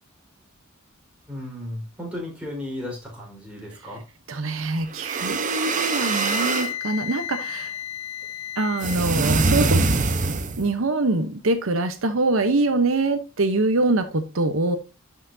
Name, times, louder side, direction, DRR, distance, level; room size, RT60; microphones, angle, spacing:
voice 1, 1.3-4.0, left 1 dB, 5° right, -3 dB, 4.5 m, -34 dB
voice 2, 4.3-7.8 8.6-9.8 10.6-14.8, right 2 dB, 70° right, 8 dB, 0.9 m, -24 dB
sound 1, 4.9-6.7 8.8-10.7, right 3 dB, 40° right, 0.9 m, -23 dB
Wind instrument woodwind instrument, 5.5-9.0, left 11 dB, 80° left, 0.5 m, -33 dB
12.0 x 5.7 x 2.7 m, 0.28 s
head